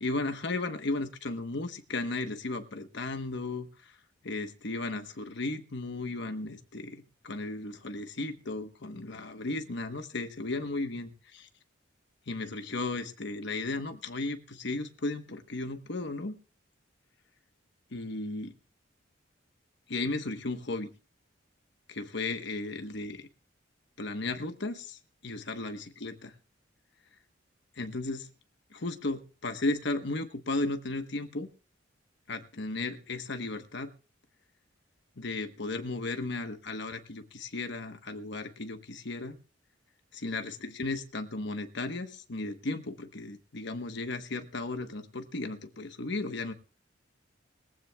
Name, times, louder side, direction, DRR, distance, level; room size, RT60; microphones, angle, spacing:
voice 1, 0.0-4.0 4.2-11.5 12.3-16.4 17.9-18.5 19.9-20.9 21.9-23.3 24.0-26.3 27.8-28.3 28.7-31.5 32.3-33.9 35.2-39.4 40.1-46.5, left 2 dB, 65° left, 7 dB, 1.2 m, -35 dB
21.5 x 15.0 x 2.3 m, 0.33 s
head